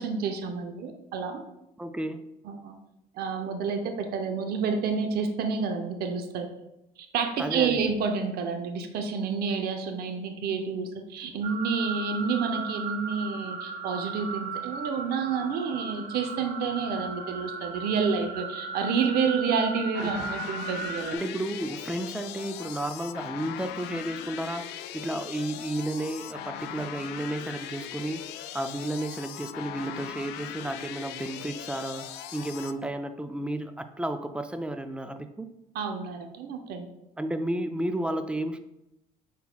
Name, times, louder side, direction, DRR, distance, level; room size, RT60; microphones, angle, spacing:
voice 1, 0.0-1.4 2.4-2.8 3.1-6.5 7.0-21.1 35.7-36.9, right 5 dB, 70° right, 6 dB, 0.6 m, -29 dB
voice 2, 1.8-2.2 7.4-7.8 20.0-20.1 21.1-28.2 28.5-35.5 37.2-38.6, right 1 dB, 5° right, 9 dB, 0.3 m, -32 dB
sound 1, 11.4-21.2, right 4 dB, 50° right, 1.1 m, -36 dB
sound 2, 19.9-32.7, left 10 dB, 90° left, 0.4 m, -40 dB
5.3 x 4.3 x 2.3 m, 0.88 s
cardioid pair, 110°, 17 cm